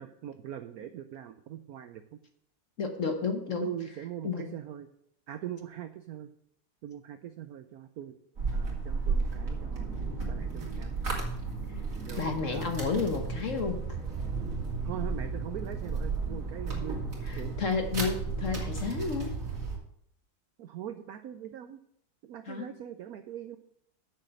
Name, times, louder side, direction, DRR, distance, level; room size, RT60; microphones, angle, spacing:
voice 1, 0.0-2.2 3.6-4.9 5.3-6.3 6.8-8.2 8.5-9.9 10.3-11.0 12.0-12.7 14.8-17.0 17.4-17.5 20.6-21.8 22.2-23.6, right 11 dB, 80° right, 9 dB, 0.8 m, -41 dB
voice 2, 2.8-3.7 4.2-4.5 12.2-13.8 17.2-19.4 22.5-22.7, left 5 dB, 50° left, 6 dB, 1.1 m, -31 dB
sound 1, 8.4-19.8, right 4 dB, 40° right, 2.5 m, -33 dB
7.5 x 6.5 x 7.5 m, 0.71 s
omnidirectional pair, 2.2 m